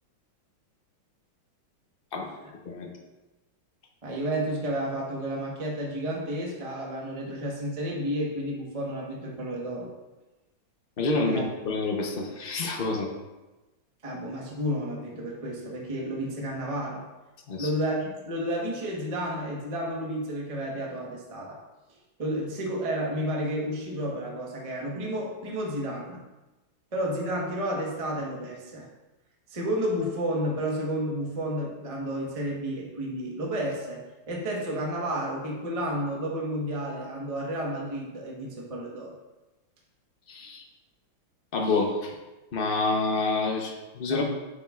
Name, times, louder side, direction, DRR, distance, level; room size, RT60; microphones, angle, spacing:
voice 1, 4.0-9.9 11.3-11.4 14.0-17.0 17.6-21.6 22.2-26.2 26.9-28.9 29.5-39.1 44.1-44.2, equal, 20° right, -2 dB, 1.0 m, -31 dB
voice 2, 11.0-13.1 17.5-17.7 40.3-40.6 41.5-42.1 42.5-44.2, left 3 dB, 55° left, 2 dB, 0.6 m, -28 dB
8.5 x 7.4 x 2.4 m, 1.1 s
omnidirectional pair, 2.3 m